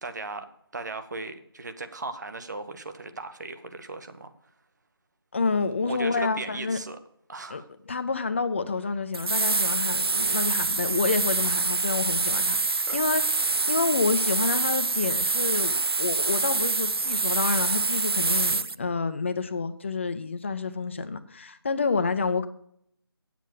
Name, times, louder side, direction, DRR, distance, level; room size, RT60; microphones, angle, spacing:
voice 1, 0.0-0.5 0.7-4.3 5.8-7.0 7.3-7.7 11.4-11.5 12.9-13.0, right 3 dB, 45° right, 9 dB, 1.2 m, -37 dB
voice 2, 5.3-6.8 7.5-13.2 13.7-22.4, left 4 dB, 30° left, 10 dB, 0.6 m, -28 dB
sound 1, 9.1-18.7, right 3 dB, 75° right, 0.5 m, -26 dB
9.1 x 7.6 x 6.8 m, 0.69 s
figure-of-eight pair, 160°, 13 cm